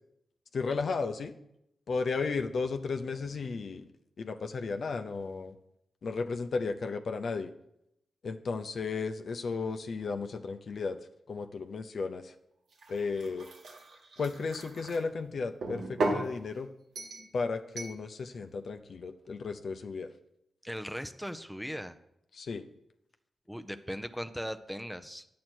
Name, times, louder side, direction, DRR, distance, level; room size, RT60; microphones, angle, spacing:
voice 1, 0.5-1.3 1.9-3.9 4.2-5.5 6.0-7.5 8.2-11.0 11.3-12.3 12.9-13.5 14.2-16.7 17.3-20.1 22.3-22.6, left 4 dB, 65° left, 7 dB, 0.7 m, -34 dB
sound 1, 12.7-15.0 15.6-16.3 17.0-17.3 17.8-18.0, right 2 dB, 80° right, 1.7 m, -35 dB
voice 2, 20.6-22.0 23.5-25.3, equal, ahead, 9 dB, 0.6 m, -38 dB
9.3 x 7.5 x 4.5 m, 0.79 s
cardioid pair, 50°, 0 cm